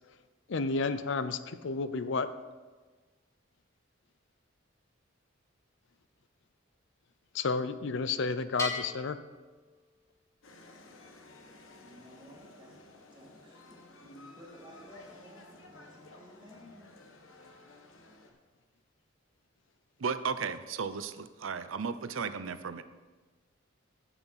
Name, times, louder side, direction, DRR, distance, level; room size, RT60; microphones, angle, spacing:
voice 1, 0.5-2.3 7.3-9.2, left 4 dB, 65° left, 12 dB, 0.5 m, -31 dB
Bell, 8.6-10.3, left 3 dB, 15° left, 1.3 m, -39 dB
sound 1, 10.4-18.3, left 2 dB, 90° left, 1.2 m, -55 dB
voice 2, 11.8-12.8 13.1-16.9, equal, 25° right, -3 dB, 2.3 m, -53 dB
voice 3, 20.0-22.8, right 5 dB, 80° right, 12 dB, 0.6 m, -35 dB
15.5 x 5.8 x 4.1 m, 1.3 s
head